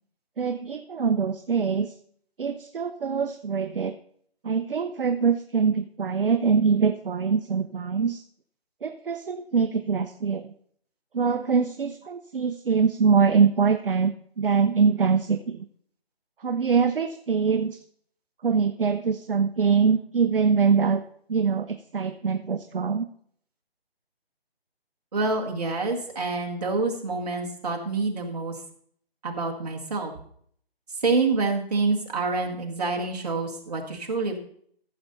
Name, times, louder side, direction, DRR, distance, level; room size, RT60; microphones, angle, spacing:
voice 1, 0.4-1.9 2.4-3.9 4.4-8.2 8.8-10.5 11.1-15.6 16.4-17.8 18.4-21.0 21.3-23.1, right 5 dB, 60° right, 9 dB, 0.6 m, -23 dB
voice 2, 25.1-28.5 29.2-30.1 31.0-34.4, right 3 dB, 40° right, 0 dB, 1.7 m, -27 dB
14.5 x 6.7 x 4.1 m, 0.63 s
figure-of-eight pair, 165°, 31 cm